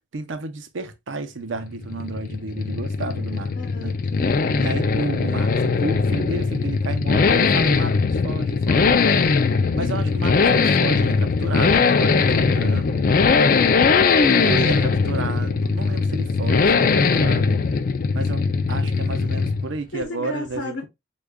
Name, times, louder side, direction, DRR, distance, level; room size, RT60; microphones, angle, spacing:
voice 1, 0.1-4.0 4.6-9.1 9.7-13.1 14.2-17.6 18.1-20.9, right 3 dB, 85° right, 0.6 m, -32 dB
Accelerating revving vroom, 1.6-19.8 20.0-20.1, left 4 dB, 45° left, 0.3 m, -20 dB
voice 2, 3.2-4.8 9.3-10.1 13.6-14.5 19.9-20.9, left 3 dB, 75° left, 0.8 m, -36 dB
4.9 x 2.3 x 2.2 m
head